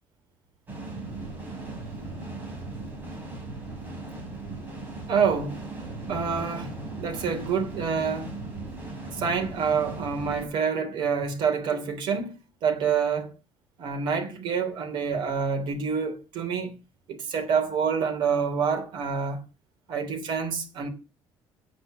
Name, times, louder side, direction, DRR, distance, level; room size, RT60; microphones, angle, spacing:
sound 1, 0.7-10.5, right 2 dB, 20° right, 4.2 m, -37 dB
voice 1, 5.1-5.5 6.1-6.7 7.0-8.3 9.1-12.3 12.6-13.3 13.8-16.8 17.1-19.4 19.9-20.9, right 6 dB, 65° right, 3.0 m, -27 dB
9.5 x 8.6 x 6.2 m
cardioid pair, 175°, 9 cm